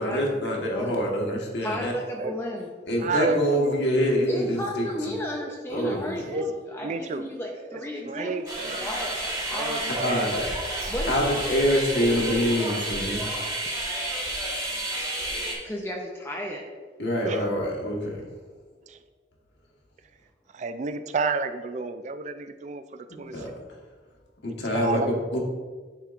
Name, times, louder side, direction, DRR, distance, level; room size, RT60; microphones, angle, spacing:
voice 1, 0.0-1.9 2.9-4.9 5.7-6.3 10.0-10.4 10.8-13.2 17.0-18.2 23.3-23.5 24.4-25.0 25.3-25.4, equal, 75° left, -1 dB, 1.3 m, -25 dB
voice 2, 0.6-1.0 1.6-2.7 4.3-8.3 8.8-10.2 10.9-11.1 15.3-16.6, equal, 15° left, -1 dB, 0.5 m, -34 dB
voice 3, 3.0-3.9 5.4-5.5 6.3-6.5 6.8-7.3 7.7-8.9 9.5-10.3 17.2-17.5 18.9-19.0 20.5-23.5 24.6-25.2, right 4 dB, 40° right, 10 dB, 0.3 m, -31 dB
sound 1, 8.5-15.6, right 1 dB, 20° right, 1.4 m, -31 dB
10.0 x 4.4 x 2.5 m, 1.4 s
head